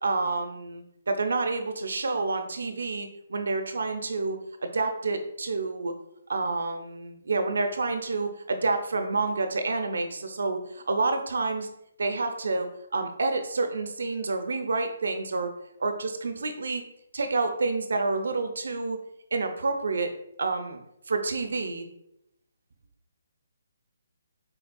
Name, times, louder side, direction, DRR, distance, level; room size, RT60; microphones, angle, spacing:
voice 1, 0.0-5.9 6.3-11.7 12.0-15.5 15.8-16.8 17.1-19.0 19.3-20.1 20.4-20.8 21.1-21.9, right 3 dB, 85° right, 7 dB, 0.4 m, -28 dB
4.0 x 3.4 x 2.2 m, 0.80 s
hypercardioid pair, 165°, 0 cm